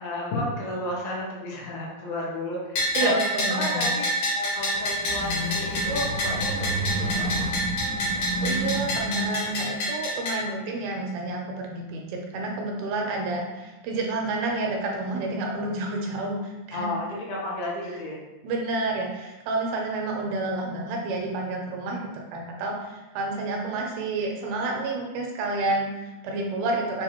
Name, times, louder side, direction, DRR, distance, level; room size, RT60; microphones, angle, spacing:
voice 1, 0.0-3.1 3.5-4.1 4.3-7.3 16.7-18.2, left 1 dB, 75° left, -4 dB, 2.8 m, -32 dB
Bell, 2.8-10.4, equal, 60° left, 2.1 m, -27 dB
voice 2, 3.0-3.9 8.4-16.9 18.4-27.0, right 2 dB, 80° right, 0 dB, 2.3 m, -29 dB
sound 1, 4.6-9.9, right 1 dB, 60° right, 1.0 m, -31 dB
6.9 x 2.5 x 2.9 m, 1.1 s
omnidirectional pair, 4.5 m